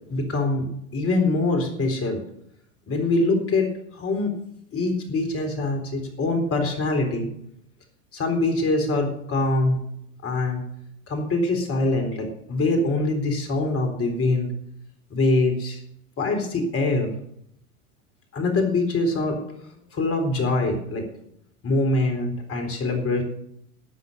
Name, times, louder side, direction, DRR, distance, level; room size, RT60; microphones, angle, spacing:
voice 1, 0.1-0.7 0.9-2.2 2.9-3.7 3.9-4.3 4.7-7.3 8.1-9.8 10.2-10.6 11.1-14.5 15.1-15.8 16.2-17.1 18.3-19.4 19.9-21.1 21.6-23.2, left 2 dB, 30° left, 4 dB, 3.9 m, -23 dB
13.0 x 8.1 x 6.5 m, 0.72 s
hypercardioid pair, 90°, 42 cm